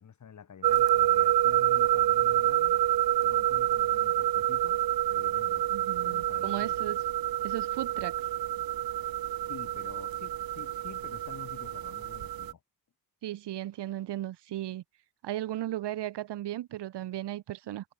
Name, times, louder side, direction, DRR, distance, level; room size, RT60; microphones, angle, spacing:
voice 1, 0.0-2.8 3.2-5.7 6.0-7.0 9.5-12.6, left 7 dB, 45° left, 3.6 m, -48 dB
sound 1, 0.6-12.5, right 13 dB, 55° right, 0.7 m, -27 dB
voice 2, 5.7-7.0 7.4-8.3 13.2-14.8 15.2-17.9, right 13 dB, 75° right, 1.6 m, -36 dB
cardioid pair, 145°, 42 cm